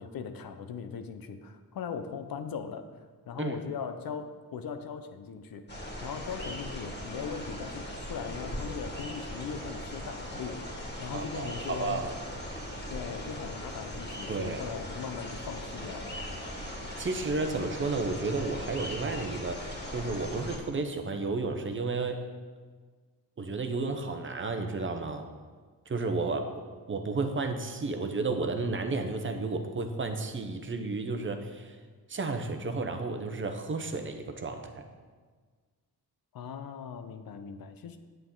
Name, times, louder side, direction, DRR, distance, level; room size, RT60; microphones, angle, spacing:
voice 1, 0.0-2.9 3.3-12.1 12.9-16.2 36.3-38.0, left 6 dB, 70° left, 8 dB, 0.8 m, -39 dB
sound 1, 5.7-20.6, equal, 25° left, 2.1 m, -39 dB
voice 2, 11.1-12.1 14.3-14.6 16.7-22.2 23.4-25.3 25.9-26.5 26.9-31.8 32.1-34.9, right 3 dB, 35° right, 6 dB, 0.8 m, -32 dB
9.1 x 8.5 x 3.9 m, 1.5 s
wide cardioid pair, 125°, 37 cm